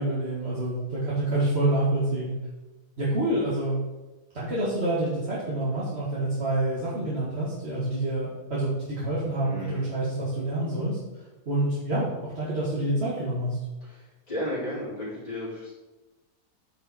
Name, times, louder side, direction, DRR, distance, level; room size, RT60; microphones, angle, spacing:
voice 1, 0.0-2.3 3.0-3.8 4.3-11.0 11.5-13.6, right 1 dB, 45° right, -8 dB, 2.0 m, -27 dB
voice 2, 9.4-9.9 13.8-15.8, left 1 dB, 25° left, -11 dB, 3.3 m, -34 dB
8.9 x 5.4 x 4.3 m, 1.1 s
omnidirectional pair, 1.6 m